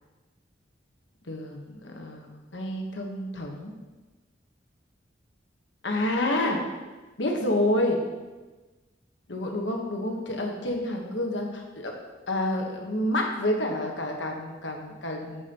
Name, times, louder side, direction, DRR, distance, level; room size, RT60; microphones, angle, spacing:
voice 1, 1.3-3.7 5.8-6.6 7.2-8.0 9.3-12.0 12.3-15.4, left 1 dB, 75° left, 1 dB, 1.2 m, -28 dB
8.6 x 7.1 x 3.0 m, 1.2 s
head